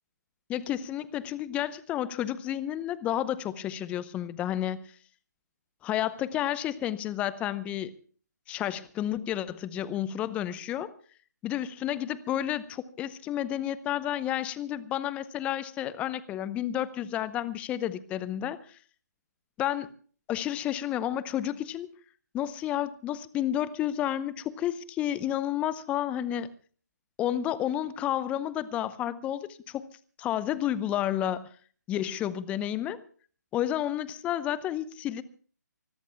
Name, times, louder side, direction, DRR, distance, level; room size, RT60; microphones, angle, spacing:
voice 1, 0.5-4.9 5.8-7.9 8.5-10.9 11.4-18.8 19.6-19.9 20.3-21.9 22.3-26.5 27.2-29.9 30.2-31.5 31.9-33.0 33.5-35.2, left 11 dB, 10° left, 17 dB, 0.7 m, -31 dB
24.5 x 20.0 x 2.3 m, 0.43 s
figure-of-eight pair, 145°, 10 cm